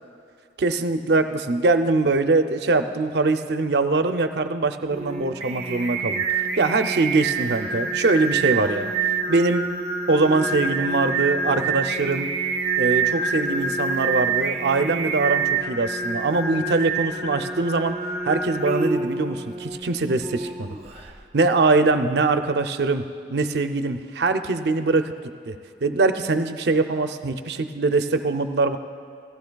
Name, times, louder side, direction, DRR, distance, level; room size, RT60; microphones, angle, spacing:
voice 1, 0.6-6.2 6.6-8.9 9.3-9.7 10.1-12.3 12.8-18.0 18.2-20.7 21.3-23.0 23.3-25.1 25.5-25.6 25.8-28.8, right 3 dB, 65° right, 8 dB, 0.5 m, -22 dB
Singing, 4.9-21.1, right 4 dB, 35° right, 0.7 m, -27 dB
16.0 x 14.5 x 2.3 m, 2.4 s
head